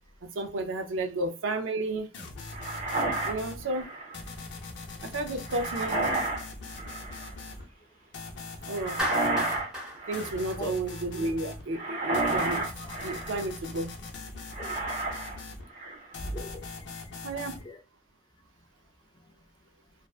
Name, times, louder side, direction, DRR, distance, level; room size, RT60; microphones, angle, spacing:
voice 1, 0.2-2.1 3.2-3.9 5.0-6.0 8.7-9.1 10.1-12.7 13.0-13.9 17.2-17.6, right 2 dB, 90° right, 0.5 m, -32 dB
sound 1, 2.1-3.6 4.1-7.6 8.1-9.6 10.1-11.6 12.1-15.6 16.1-17.6, left 3 dB, 65° left, 0.6 m, -42 dB
sound 2, 2.5-4.1 5.5-6.5 6.7-7.3 8.7-9.7 10.0-10.5 11.7-13.4 14.5-15.4 15.7-16.1, right 2 dB, 40° right, 0.8 m, -31 dB
Clapping, 9.0-11.3, equal, 5° right, 0.8 m, -34 dB
voice 2, 14.6-14.9 16.2-17.3 17.6-17.8 19.1-19.3, equal, 25° left, 0.3 m, -41 dB
2.5 x 2.2 x 2.3 m
head